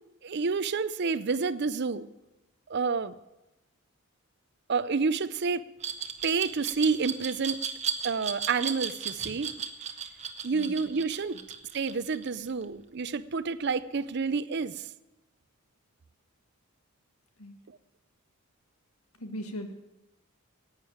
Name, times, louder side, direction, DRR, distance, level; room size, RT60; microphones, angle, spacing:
voice 1, 0.2-2.1 2.7-3.1 4.7-5.7 6.2-7.6 8.0-9.5 10.4-11.4 11.7-14.8, right 5 dB, 50° right, 16 dB, 0.5 m, -29 dB
Glass, 5.8-12.6, right 7 dB, 30° right, 1.0 m, -34 dB
voice 2, 19.2-19.7, equal, 85° left, 7 dB, 1.7 m, -39 dB
11.5 x 9.0 x 9.3 m, 1.0 s
head